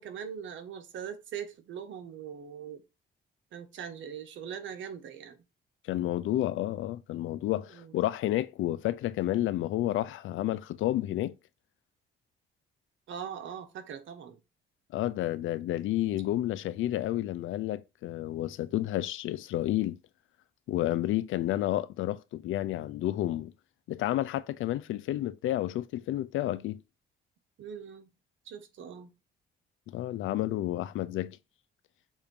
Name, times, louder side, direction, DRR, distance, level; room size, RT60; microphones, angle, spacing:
voice 1, 0.0-2.8 3.5-5.4 7.7-7.9 13.1-14.4 27.6-28.1 28.4-29.1, right 8 dB, 75° right, 1.3 m, -41 dB
voice 2, 5.9-11.3 14.9-20.0 20.7-23.5 23.9-26.8 29.9-31.4, left 14 dB, 80° left, 0.6 m, -30 dB
7.1 x 2.7 x 5.3 m
cardioid pair, 90°, 20 cm